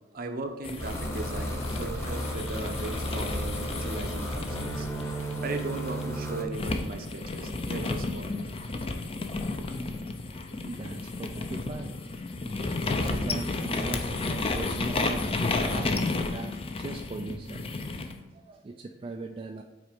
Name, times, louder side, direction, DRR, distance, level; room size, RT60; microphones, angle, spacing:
voice 1, 0.1-4.9 5.4-8.5, right 3 dB, 50° right, 6 dB, 0.8 m, -37 dB
sound 1, 0.6-6.0 6.5-18.1, left 3 dB, 30° left, 0.5 m, -32 dB
sound 2, 0.8-6.4, equal, 15° left, 0.9 m, -34 dB
voice 2, 10.6-12.0 12.4-12.6 13.0-17.8 18.3-19.6, right 3 dB, 30° right, 3 dB, 0.3 m, -40 dB
5.9 x 4.1 x 5.1 m, 1.3 s
head